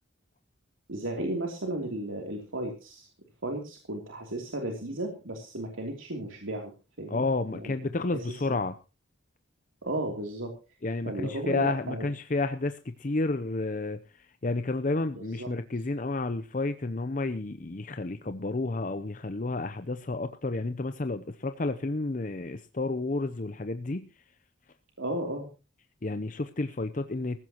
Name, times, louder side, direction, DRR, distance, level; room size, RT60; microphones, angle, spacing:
voice 1, 0.9-3.1 3.4-6.7 7.0-7.2 7.5-7.7 8.1-8.6 9.8-10.5 11.0-12.1 15.2-15.5 25.0-25.5, right 1 dB, 90° right, 1 dB, 3.1 m, -34 dB
voice 2, 7.1-8.7 10.8-24.1 26.0-27.4, left 3 dB, 40° left, 9 dB, 0.6 m, -31 dB
19.0 x 15.5 x 3.0 m, 0.33 s
head